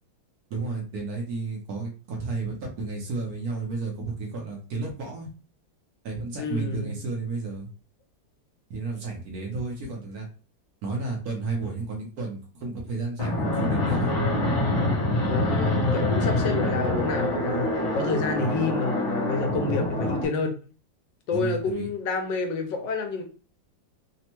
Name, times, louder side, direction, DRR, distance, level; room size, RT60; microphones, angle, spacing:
voice 1, 0.5-5.3 6.0-7.7 8.7-10.3 10.8-14.1 18.4-18.7 21.3-21.9, right 3 dB, 65° right, 0 dB, 1.1 m, -32 dB
voice 2, 6.4-7.0 15.2-20.5 21.3-23.2, left 4 dB, 80° left, 4 dB, 1.3 m, -28 dB
Fixed-wing aircraft airplane, 13.2-20.3, left 1 dB, 60° left, 0.9 m, -25 dB
3.4 x 2.1 x 2.9 m, 0.38 s
omnidirectional pair, 2.0 m